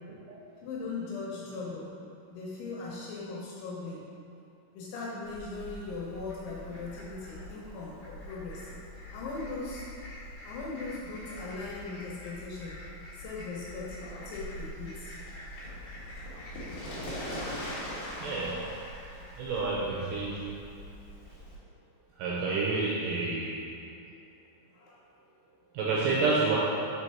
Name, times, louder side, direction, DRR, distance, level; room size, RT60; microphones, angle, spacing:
voice 1, 0.6-1.9 2.3-4.1 4.7-8.7 9.1-9.8 10.4-12.8 13.1-14.0 14.3-15.3 24.7-25.0, left 3 dB, 75° left, -5 dB, 3.1 m, -39 dB
Fowl, 5.2-21.5, equal, 60° left, 2.3 m, -43 dB
voice 2, 18.2-18.6 19.4-20.6 22.2-23.6 25.7-26.6, right 3 dB, 80° right, -6 dB, 2.6 m, -29 dB
6.8 x 4.5 x 4.4 m, 2.5 s
omnidirectional pair, 5.7 m